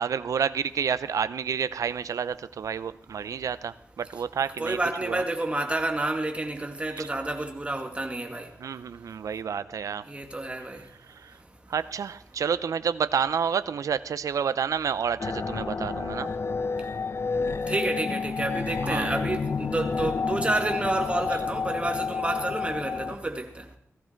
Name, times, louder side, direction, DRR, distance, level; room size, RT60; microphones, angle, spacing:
voice 1, 0.0-5.2 6.9-7.1 8.6-10.0 11.1-11.4 11.7-16.3 18.8-19.1, right 7 dB, 90° right, 0.6 m, -29 dB
voice 2, 4.6-8.5 10.1-10.8 17.7-23.6, right 2 dB, 20° right, 2.2 m, -29 dB
sound 1, 15.2-23.2, left 4 dB, 50° left, 0.6 m, -30 dB
17.0 x 15.0 x 4.5 m
wide cardioid pair, 90°, 6 cm